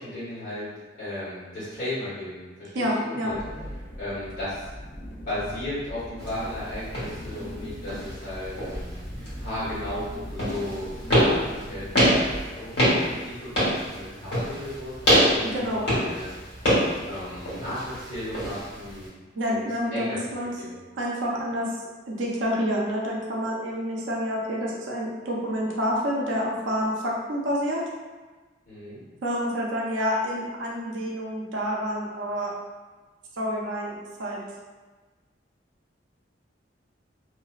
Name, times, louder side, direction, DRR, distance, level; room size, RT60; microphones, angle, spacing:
voice 1, 0.0-3.4 4.0-4.7 5.3-16.3 16.7-19.1 19.5-20.2 20.6-20.8 28.7-29.0, left 1 dB, 50° left, -12 dB, 1.2 m, -35 dB
voice 2, 2.7-3.3 15.4-15.9 19.3-20.5 21.0-21.7 22.1-27.9 29.2-32.5 33.4-34.4, equal, 85° right, -3 dB, 0.5 m, -28 dB
sound 1, 3.3-12.4, equal, 10° left, 0.5 m, -40 dB
sound 2, 6.2-19.1, equal, 70° left, 1.3 m, -26 dB
2.6 x 2.1 x 2.3 m, 1.3 s
head